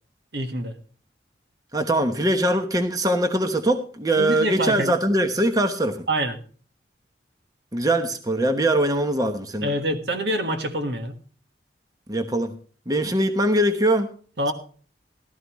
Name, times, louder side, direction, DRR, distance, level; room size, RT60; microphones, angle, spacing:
voice 1, 0.3-0.7 4.2-4.9 6.1-6.4 9.6-11.2 14.4-14.5, right 1 dB, 70° right, 1.6 m, -26 dB
voice 2, 1.7-6.0 7.7-9.7 12.1-12.5 12.9-14.1, right 1 dB, 20° right, 1.0 m, -22 dB
15.0 x 13.0 x 3.1 m
head